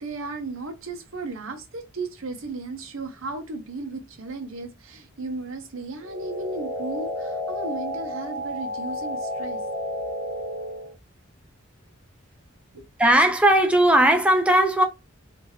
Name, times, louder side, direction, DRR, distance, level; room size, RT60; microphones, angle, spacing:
voice 1, 0.0-9.6 12.7-12.8, right 3 dB, 85° right, 0.9 m, -35 dB
sound 1, 6.0-10.9, left 1 dB, 45° left, 0.9 m, -31 dB
voice 2, 13.0-14.8, right 1 dB, 5° right, 0.6 m, -17 dB
3.4 x 2.9 x 3.2 m
head